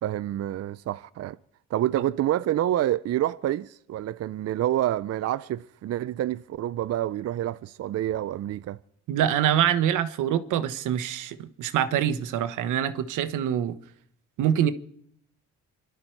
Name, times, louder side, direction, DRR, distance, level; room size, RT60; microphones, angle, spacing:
voice 1, 0.0-1.4 1.7-8.8, right 13 dB, 55° right, 0.5 m, -28 dB
voice 2, 9.1-13.7 14.4-14.7, right 10 dB, 85° right, 1.1 m, -25 dB
25.0 x 11.5 x 4.6 m
cardioid pair, 90°, 30 cm